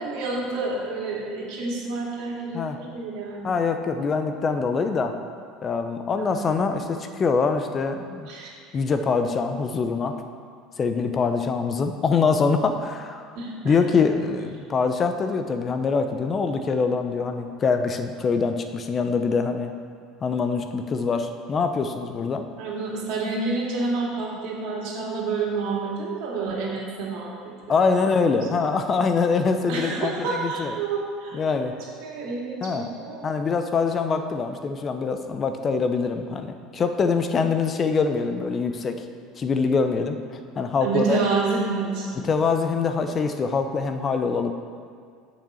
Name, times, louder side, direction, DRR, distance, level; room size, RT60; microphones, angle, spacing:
voice 1, 0.0-3.5 4.0-4.3 6.1-6.3 8.3-8.5 13.3-13.7 22.6-28.1 29.7-33.3 40.8-42.3, right 3 dB, 65° right, -3 dB, 2.3 m, -29 dB
voice 2, 3.4-5.1 5.6-8.3 8.7-10.2 10.8-13.3 13.6-19.7 20.2-22.4 27.7-30.8 31.3-31.7 32.6-32.9 33.2-39.0 39.4-41.2 42.3-44.5, left 5 dB, 35° left, 7 dB, 0.8 m, -24 dB
6.7 x 6.3 x 7.2 m, 2.2 s
hypercardioid pair, 80°, 0 cm